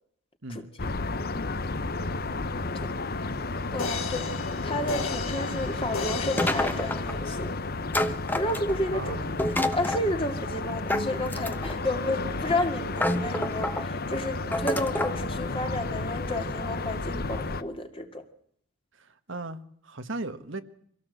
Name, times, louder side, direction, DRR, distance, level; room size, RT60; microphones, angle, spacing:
sound 1, 0.8-17.6, left 3 dB, 45° left, 0.9 m, -32 dB
voice 1, 3.7-4.3 4.6-7.6 8.3-9.2 9.6-18.3, left 1 dB, 25° left, 2.3 m, -31 dB
sound 2, 3.8-7.5 8.0-8.1, left 4 dB, 70° left, 2.9 m, -36 dB
sound 3, 6.4-7.2 7.9-8.9 9.4-10.1 10.9-11.8 12.5-12.6 13.0-13.8 14.5-15.2, left 1 dB, 10° left, 1.0 m, -28 dB
voice 2, 8.9-9.4 18.9-20.6, right 2 dB, 60° right, 1.5 m, -37 dB
25.0 x 17.0 x 7.9 m
head